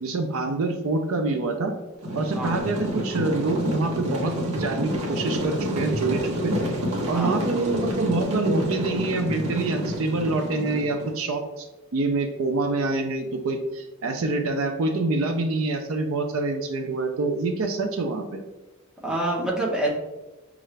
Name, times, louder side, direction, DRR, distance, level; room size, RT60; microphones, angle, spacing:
voice 1, 0.0-1.7 2.1-6.6 7.1-11.7 11.9-18.4, right 3 dB, 60° right, 6 dB, 0.4 m, -26 dB
sound 1, 2.0-11.1, equal, 80° right, 0.8 m, -29 dB
voice 2, 19.0-19.9, right 1 dB, 5° right, -4 dB, 0.8 m, -26 dB
5.5 x 2.5 x 3.2 m, 1.0 s
head